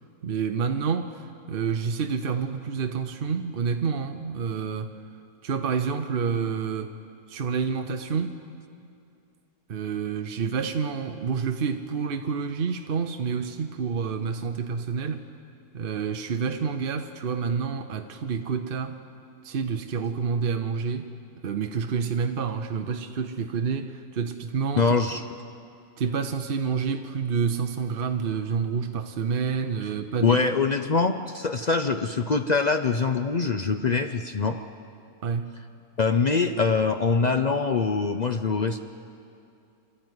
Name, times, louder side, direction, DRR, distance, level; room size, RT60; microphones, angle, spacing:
voice 1, 0.2-4.9 5.4-6.9 7.3-8.4 9.7-15.3 15.7-19.0 19.4-21.1 21.4-24.9 26.0-30.4 35.2-35.6, right 6 dB, 50° right, 6 dB, 0.8 m, -28 dB
voice 2, 24.8-25.2 30.2-34.6 36.0-38.8, left 4 dB, 70° left, 7 dB, 0.4 m, -24 dB
26.5 x 13.0 x 9.5 m, 2.5 s
omnidirectional pair, 1.6 m